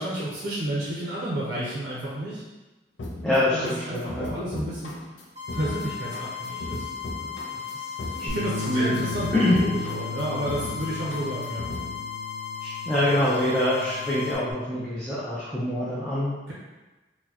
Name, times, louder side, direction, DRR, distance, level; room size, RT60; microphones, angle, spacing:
voice 1, 0.0-2.4 3.5-4.9 5.5-6.9 7.2-8.0 8.2-11.6 16.5-16.6, right 1 dB, 55° right, -6 dB, 0.6 m, -31 dB
sound 1, 3.0-12.0, left 1 dB, 90° left, 0.5 m, -37 dB
voice 2, 3.2-4.3 8.2-8.3 8.7-9.0 9.3-9.6 12.6-16.5, left 1 dB, 5° left, -10 dB, 0.5 m, -25 dB
sound 2, 5.4-14.4, left 7 dB, 15° right, 0.9 m, -36 dB
Bass guitar, 8.3-14.5, left 3 dB, 40° left, 1.0 m, -37 dB
4.2 x 2.1 x 2.8 m, 1.2 s
head